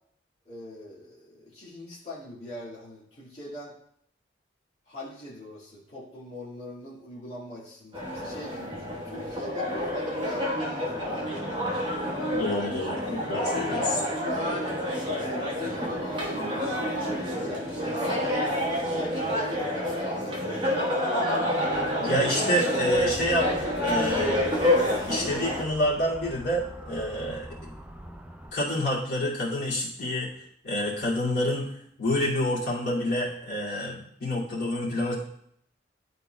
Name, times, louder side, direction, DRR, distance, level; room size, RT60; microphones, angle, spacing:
voice 1, 0.5-3.7 4.9-11.4 12.5-12.9 13.3-14.7 15.3-17.9 18.5-21.0, left 1 dB, 35° left, -9 dB, 1.8 m, -42 dB
sound 1, 7.9-25.6, left 1 dB, 25° right, 1.2 m, -28 dB
voice 2, 12.3-13.8 22.0-23.5 23.8-24.4 25.1-27.5 28.5-31.7 32.0-35.2, equal, 75° left, -8 dB, 2.4 m, -28 dB
Motor vehicle (road) / Siren, 22.9-28.5, right 1 dB, 5° right, 0.3 m, -43 dB
11.0 x 4.1 x 2.2 m, 0.69 s
head